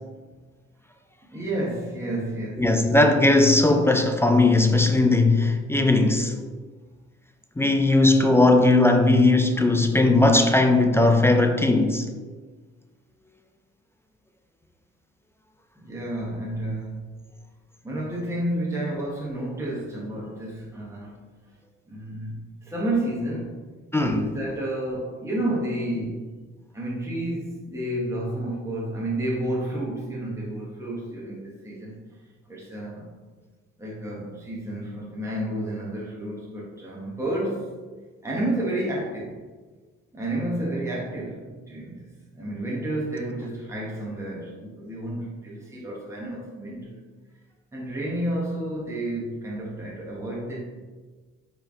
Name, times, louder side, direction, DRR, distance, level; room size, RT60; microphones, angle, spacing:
voice 1, 1.3-2.8 15.8-17.1 17.8-21.2 21.9-23.6 24.1-26.3 26.7-32.0 32.5-33.1 33.8-37.7 38.2-39.3 40.1-47.0 47.7-50.6, right 1 dB, 10° right, 1.1 m, -30 dB
voice 2, 2.6-6.4 7.6-12.1 23.9-24.3, left 2 dB, 10° left, 0.4 m, -18 dB
4.4 x 3.3 x 3.5 m
cardioid pair, 90°, 30 cm